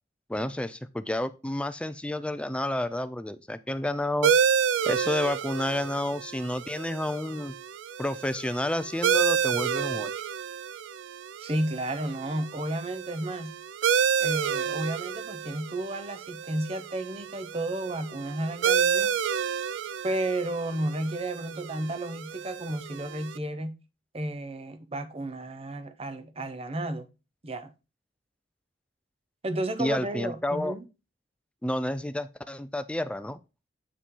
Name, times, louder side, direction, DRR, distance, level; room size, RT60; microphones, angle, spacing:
voice 1, 0.3-4.3 4.9-7.5 8.0-10.1 29.8-30.8 31.6-33.4, left 1 dB, 5° left, 0.4 m, -30 dB
sound 1, 4.2-23.4, right 7 dB, 80° right, 0.4 m, -30 dB
voice 2, 11.4-13.5 14.2-19.1 20.0-23.8 24.1-27.1 27.4-27.7 29.4-30.8, right 1 dB, 30° right, 0.7 m, -32 dB
8.2 x 4.9 x 3.8 m
head